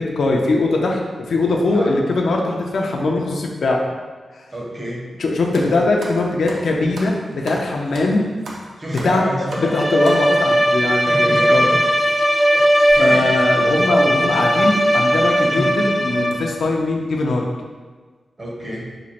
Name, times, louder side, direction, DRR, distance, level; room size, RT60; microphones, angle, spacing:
voice 1, 0.0-3.8 5.2-8.3 8.9-11.7 13.0-17.4, left 2 dB, 75° left, 0 dB, 0.4 m, -20 dB
voice 2, 4.5-5.0 8.8-9.8 11.1-11.8 12.5-13.4 14.1-14.6 15.4-15.7 18.4-18.9, right 1 dB, 30° right, -3 dB, 0.7 m, -29 dB
sound 1, 5.5-10.6 11.4-11.5 12.2-12.3 12.5-12.7 13.7-13.9 14.3-14.5 15.0-15.1 15.5-15.7 16.1-16.3, right 1 dB, 70° right, 0.6 m, -36 dB
Bowed string instrument, 9.5-16.6, equal, ahead, 0.3 m, -18 dB
3.0 x 2.5 x 4.1 m, 1.4 s
wide cardioid pair, 145°, 0 cm